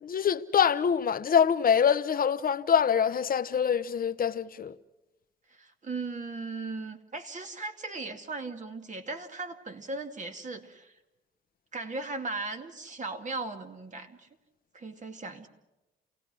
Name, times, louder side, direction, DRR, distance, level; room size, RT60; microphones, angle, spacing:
voice 1, 0.0-4.7, left 7 dB, 45° left, 1.0 m, -25 dB
voice 2, 5.6-10.9 11.7-14.2 14.7-15.5, right 3 dB, 40° right, 2.4 m, -37 dB
28.5 x 18.0 x 6.2 m
cardioid pair, 90°, 20 cm